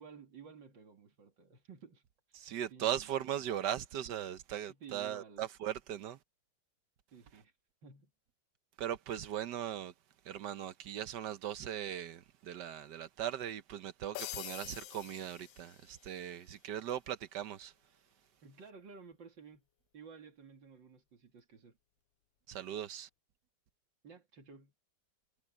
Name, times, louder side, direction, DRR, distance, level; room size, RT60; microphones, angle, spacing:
voice 1, 0.0-2.0 2.3-3.1 4.7-5.5 7.1-7.5 7.8-8.1 18.4-19.7 19.9-21.8 24.0-24.7, right 6 dB, 90° right, 3.1 m, -54 dB
voice 2, 2.3-6.2 8.8-9.9 10.2-17.7 22.5-23.1, right 10 dB, 70° right, 1.5 m, -39 dB
sound 1, 14.1-16.2, left 15 dB, 90° left, 1.3 m, -46 dB
omnidirectional pair, 2.0 m